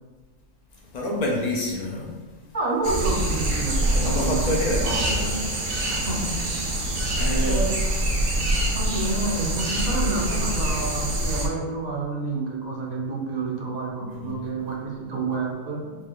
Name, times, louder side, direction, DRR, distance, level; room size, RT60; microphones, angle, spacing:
voice 1, 0.9-2.1 3.9-5.5 7.2-7.6 14.0-14.4, left 1 dB, 60° left, -2 dB, 0.4 m, -27 dB
voice 2, 2.5-4.6 5.9-6.3 7.5-7.7 8.7-16.0, right 3 dB, 45° right, -2 dB, 0.5 m, -29 dB
sound 1, 2.8-11.5, right 1 dB, 75° right, 1.1 m, -25 dB
4.7 x 2.4 x 3.0 m, 1.4 s
omnidirectional pair, 1.4 m